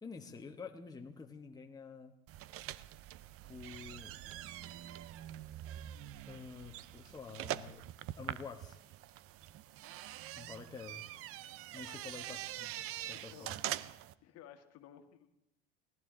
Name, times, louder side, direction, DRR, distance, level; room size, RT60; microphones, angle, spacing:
voice 1, 0.0-2.1 3.5-4.2 6.3-7.8 8.2-8.8 10.4-11.1 11.7-13.6, left 5 dB, 10° left, 3 dB, 1.2 m, -49 dB
sound 1, 2.3-14.1, right 13 dB, 45° right, 0.6 m, -44 dB
voice 2, 13.1-13.7 14.2-15.3, left 10 dB, 50° left, 7 dB, 1.6 m, -56 dB
18.0 x 14.0 x 3.9 m, 0.86 s
hypercardioid pair, 95°, 32 cm